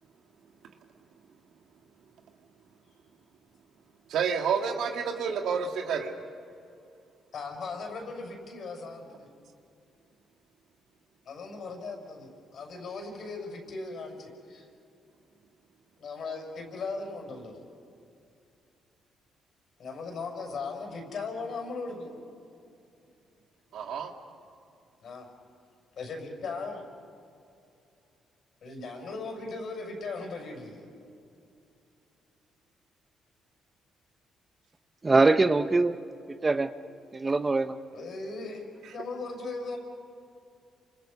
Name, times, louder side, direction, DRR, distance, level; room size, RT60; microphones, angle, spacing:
voice 1, 4.1-6.1 23.7-24.1, right 6 dB, 75° right, 4 dB, 2.2 m, -29 dB
voice 2, 7.3-9.3 11.2-14.7 16.0-17.6 19.8-22.2 25.0-25.3 26.0-26.9 28.6-30.9 37.9-39.8, left 3 dB, 60° left, 2 dB, 6.3 m, -38 dB
voice 3, 35.0-36.0 36.4-36.7 37.1-37.8, right 3 dB, 25° right, 10 dB, 0.8 m, -22 dB
29.0 x 26.5 x 5.4 m, 2.6 s
cardioid pair, 90°, 0 cm